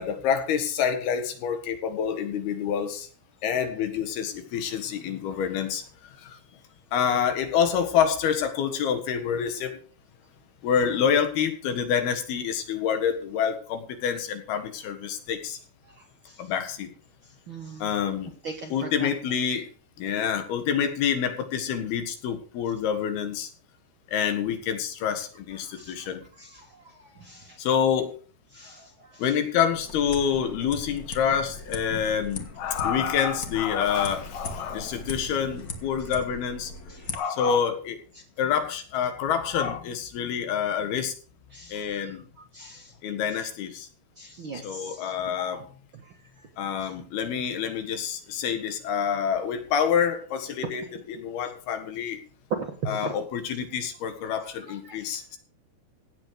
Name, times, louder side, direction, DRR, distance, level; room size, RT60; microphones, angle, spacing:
voice 1, 0.0-3.1 3.4-5.8 6.2-6.4 6.9-9.8 10.6-15.6 16.4-16.9 17.8-18.3 18.7-19.7 20.0-23.5 24.1-26.2 27.6-28.2 29.2-36.7 37.1-38.0 38.4-41.1 41.7-42.2 43.0-43.9 44.6-45.6 46.6-52.2 52.9-55.4, left 8 dB, 85° left, 7 dB, 3.6 m, -27 dB
voice 2, 15.8-16.5 17.5-17.9 18.4-19.1 25.6-27.6 28.5-29.3 32.7-32.8 36.9-37.2 38.1-38.2 41.5-42.1 42.5-43.0 43.4-43.5 44.2-45.1 46.0-46.5 46.8-46.9 52.5-53.1 54.4-55.2, right 4 dB, 55° right, 2 dB, 1.4 m, -39 dB
sound 1, 29.7-37.2, left 3 dB, 55° left, 1.0 m, -39 dB
16.5 x 8.0 x 4.9 m, 0.40 s
omnidirectional pair, 4.3 m